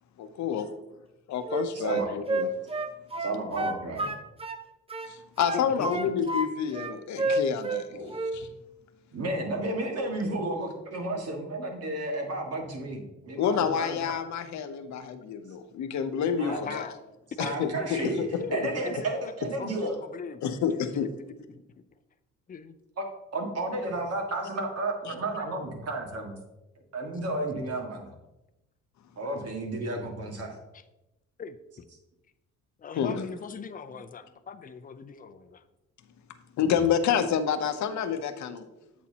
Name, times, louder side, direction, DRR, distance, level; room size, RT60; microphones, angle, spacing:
voice 1, 0.2-0.7 1.3-2.5 5.1-7.9 8.3-8.5 13.4-16.9 17.4-18.6 20.4-21.1 25.1-25.2 33.0-33.3 36.6-38.6, left 7 dB, 65° left, 9 dB, 0.8 m, -28 dB
Wind instrument woodwind instrument, 1.4-4.6 4.9-6.5 6.7-7.8 8.1-8.4, right 2 dB, 20° right, 0.7 m, -30 dB
voice 2, 1.7-2.1 3.2-4.2 7.9-8.2 9.1-14.0 16.4-16.7 17.4-20.0 23.0-23.1 23.3-26.4 26.9-28.1 29.2-30.6 36.6-36.8, right 2 dB, 55° right, 2 dB, 1.9 m, -32 dB
voice 3, 5.5-5.9 16.5-17.0 17.4-18.1 18.4-20.4 20.7-21.1 21.5-21.6 22.5-22.8 31.4-31.8 32.8-35.6, left 6 dB, 30° left, 10 dB, 0.6 m, -40 dB
8.5 x 7.3 x 2.9 m, 0.96 s
cardioid pair, 90°, 30 cm